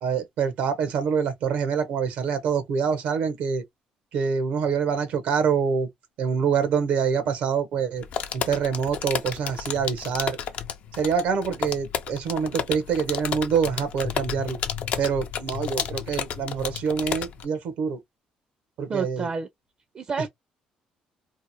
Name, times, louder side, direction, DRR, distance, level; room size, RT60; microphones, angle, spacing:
voice 1, 0.0-3.6 4.1-5.9 6.2-8.0 8.3-10.4 10.9-14.6 15.0-18.0 18.8-19.3, right 6 dB, 80° right, 0.6 m, -25 dB
sound 1, 8.0-17.4, left 8 dB, 65° left, 0.5 m, -32 dB
voice 2, 18.9-19.5 19.9-20.3, right 5 dB, 40° right, 0.4 m, -28 dB
2.8 x 2.0 x 2.7 m
cardioid pair, 90°, 2 cm